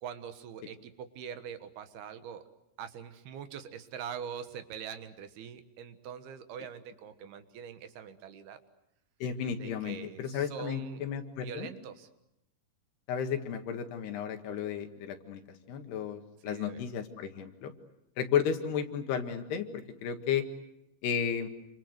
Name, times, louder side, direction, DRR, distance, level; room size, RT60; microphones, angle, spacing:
voice 1, 0.0-2.4 2.8-8.6 9.6-11.0 11.4-12.1 16.5-16.8, right 8 dB, 70° right, 9 dB, 3.2 m, -43 dB
voice 2, 9.2-11.7 13.1-15.4 15.7-17.7 18.2-20.4 21.0-21.5, left 8 dB, 75° left, 6 dB, 3.8 m, -33 dB
28.0 x 26.0 x 8.0 m, 0.86 s
omnidirectional pair, 4.8 m